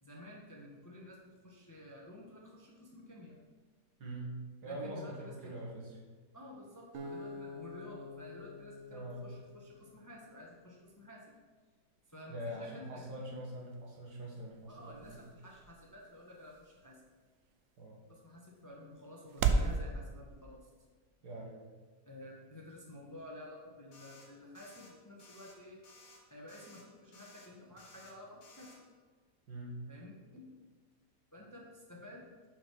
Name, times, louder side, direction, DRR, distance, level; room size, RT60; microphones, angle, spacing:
voice 1, 0.0-3.4 4.6-5.5 6.3-11.2 12.1-13.4 14.7-17.0 18.1-20.7 22.0-25.8 26.3-28.7 29.9-30.5 31.3-32.4, left 1 dB, 15° left, -2 dB, 0.8 m, -52 dB
voice 2, 4.0-6.0 8.9-9.3 12.3-15.3 17.8-18.0 21.2-21.7 29.5-29.8, right 1 dB, 85° right, -2 dB, 2.1 m, -43 dB
Acoustic guitar, 6.9-10.2, left 2 dB, 50° right, 1.1 m, -47 dB
sound 1, 13.5-19.8, right 4 dB, 70° right, 0.8 m, -38 dB
Alarm FM(Sytrus Eq ptchshft chrs MSprcssng), 23.9-24.3 24.6-24.9 25.2-25.6 25.8-26.2 26.5-26.8 27.1-27.5 27.8-28.1 28.4-28.8, left 2 dB, 80° left, 2.0 m, -58 dB
6.1 x 4.7 x 6.1 m, 1.4 s
omnidirectional pair, 1.7 m